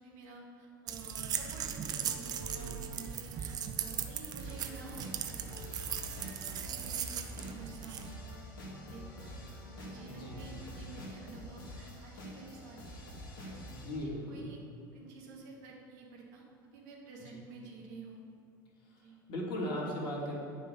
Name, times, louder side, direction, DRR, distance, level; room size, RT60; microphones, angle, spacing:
voice 1, 0.0-5.6 5.8-5.9 6.2-8.4 8.8-9.4 9.8-13.0 13.4-13.6 14.0-14.6 14.9-18.2 18.9-19.2, right 3 dB, 55° right, -2 dB, 2.5 m, -51 dB
sound 1, 0.9-8.1, right 9 dB, 35° right, 0.9 m, -38 dB
sound 2, 1.4-11.1, equal, 85° left, 2.3 m, -53 dB
sound 3, 4.4-14.0, equal, 65° left, 2.4 m, -47 dB
voice 2, 10.0-10.6 13.7-14.4 18.9-19.0 19.3-20.4, left 1 dB, 45° left, -3 dB, 3.1 m, -38 dB
11.0 x 5.6 x 8.1 m, 2.6 s
figure-of-eight pair, 75°, 12 cm